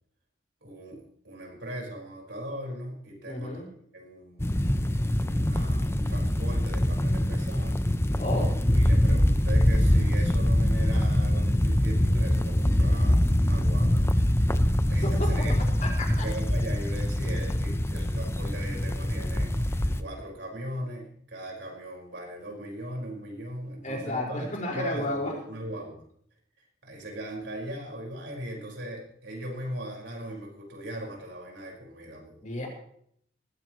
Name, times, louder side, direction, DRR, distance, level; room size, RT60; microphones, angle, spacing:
voice 1, 0.6-3.6 3.9-4.5 5.2-7.8 8.8-14.1 14.9-15.6 16.2-26.0 26.8-32.4, right 1 dB, 80° right, -1 dB, 5.1 m, -39 dB
voice 2, 3.3-3.7 8.2-8.5 15.0-15.5 15.8-16.2 23.8-25.3 32.4-32.7, left 1 dB, 45° left, -2 dB, 5.1 m, -32 dB
sound 1, 4.4-20.0, left 1 dB, 15° left, 0.7 m, -24 dB
20.0 x 16.0 x 3.1 m, 0.66 s
head